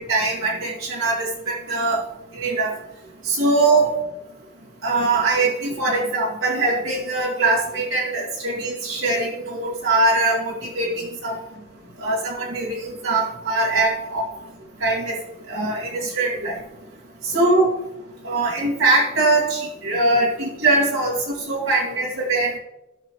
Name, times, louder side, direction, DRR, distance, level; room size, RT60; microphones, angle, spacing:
voice 1, 0.0-2.0 2.3-2.7 3.2-3.9 4.8-11.4 12.0-14.2 14.8-15.2 15.5-16.6 17.3-17.7 18.2-22.6, right 2 dB, 90° right, -5 dB, 2.2 m, -22 dB
16.0 x 6.1 x 3.1 m, 0.98 s
head